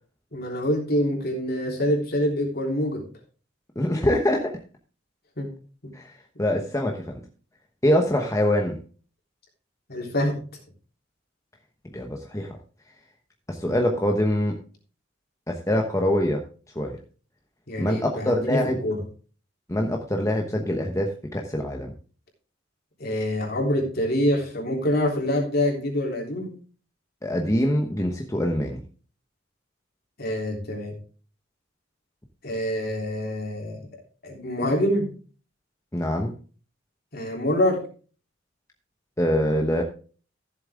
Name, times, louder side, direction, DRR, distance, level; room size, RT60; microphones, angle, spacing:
voice 1, 0.3-3.0 5.4-5.5 5.8-5.9 8.1-8.3 9.9-10.4 17.7-19.0 23.0-26.5 30.2-30.9 32.4-33.8 34.2-35.1 37.1-37.8, left 1 dB, 50° left, 0 dB, 3.5 m, -25 dB
voice 2, 3.8-4.5 5.9-6.1 6.4-7.2 7.8-8.7 11.9-12.6 13.5-14.5 15.5-16.4 16.7-17.0 17.8-18.8 19.7-21.9 27.2-28.8 35.9-36.3 39.2-39.8, left 1 dB, 15° left, 2 dB, 1.1 m, -24 dB
14.0 x 7.5 x 3.6 m, 0.39 s
head